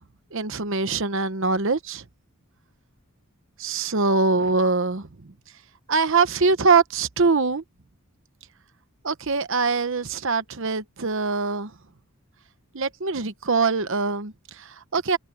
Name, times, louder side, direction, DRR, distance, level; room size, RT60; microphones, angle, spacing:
voice 1, 0.3-2.0 3.6-5.3 5.9-7.6 9.0-11.7 12.7-15.2, right 4 dB, 60° right, 1.0 m, -23 dB
head